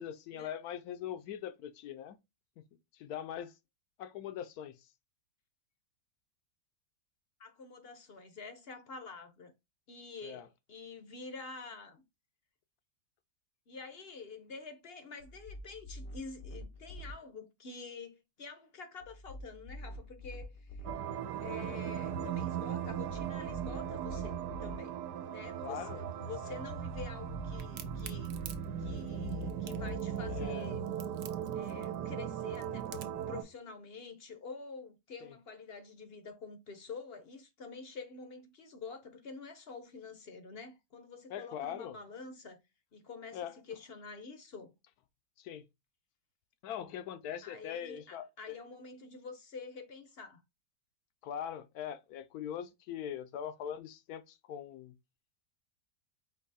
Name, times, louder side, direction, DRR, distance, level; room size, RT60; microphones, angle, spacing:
voice 1, 0.0-2.2 2.9-3.5 4.0-4.8 10.2-10.5 25.6-26.0 26.4-26.6 30.3-30.8 41.3-42.0 43.3-43.6 45.4-45.7 46.6-48.6 51.2-54.9, left 9 dB, 75° left, 1.0 m, -41 dB
voice 2, 7.4-9.5 9.9-12.0 13.7-20.9 21.4-28.4 28.8-31.0 31.5-42.6 42.9-44.7 47.4-50.4, left 4 dB, 50° left, 0.7 m, -48 dB
sound 1, 15.2-17.1 19.0-20.9 22.8-24.7 26.6-30.4, left 2 dB, 90° left, 1.5 m, -46 dB
sound 2, 20.8-33.4, right 9 dB, 85° right, 1.3 m, -38 dB
Crack, 27.6-33.3, right 9 dB, 65° right, 0.9 m, -49 dB
4.7 x 2.7 x 4.0 m
omnidirectional pair, 1.8 m